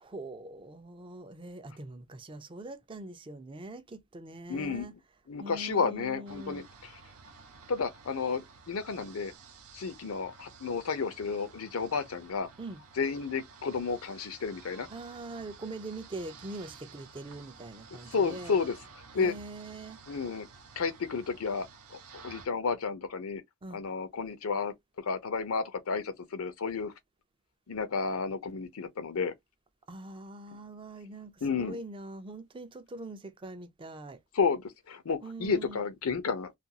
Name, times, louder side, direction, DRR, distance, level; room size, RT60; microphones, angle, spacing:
voice 1, 0.0-4.9 5.4-6.6 12.6-12.8 14.9-18.5 19.2-20.0 23.6-23.8 29.9-34.2 35.2-35.8, right 2 dB, 25° right, 0.4 m, -43 dB
voice 2, 4.5-4.9 5.3-7.0 7.7-9.3 9.7-12.5 13.0-14.9 18.1-18.7 19.1-19.3 20.1-20.5 20.8-23.4 23.7-26.9 27.7-29.3 31.4-31.8 34.3-36.5, left 5 dB, 75° left, 0.6 m, -32 dB
tube radio shortwave longwave noise interference dead air, 6.3-22.5, right 5 dB, 85° right, 0.6 m, -52 dB
2.4 x 2.3 x 2.8 m
head